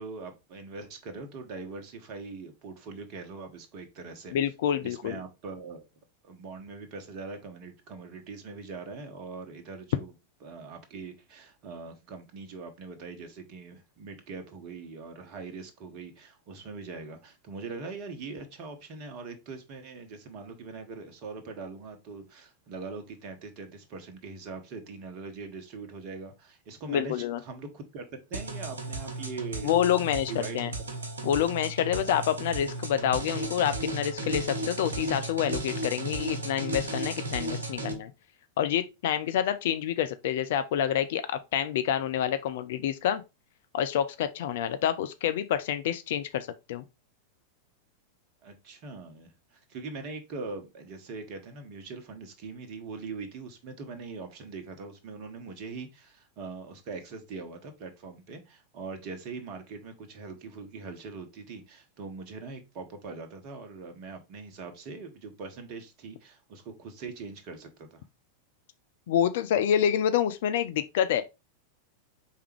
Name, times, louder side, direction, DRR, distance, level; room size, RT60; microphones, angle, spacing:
voice 1, 0.0-4.4 4.8-5.8 6.2-10.1 10.4-29.7 30.0-31.0 48.4-68.0, right 4 dB, 40° right, 1.0 m, -42 dB
voice 2, 4.3-5.2 26.9-27.4 29.6-30.7 31.2-38.1 38.6-43.2 43.7-46.8 69.1-71.2, left 10 dB, 55° left, 0.4 m, -27 dB
sound 1, 28.3-37.9, right 2 dB, 70° right, 0.9 m, -35 dB
4.6 x 3.4 x 3.2 m
figure-of-eight pair, 90°, 0 cm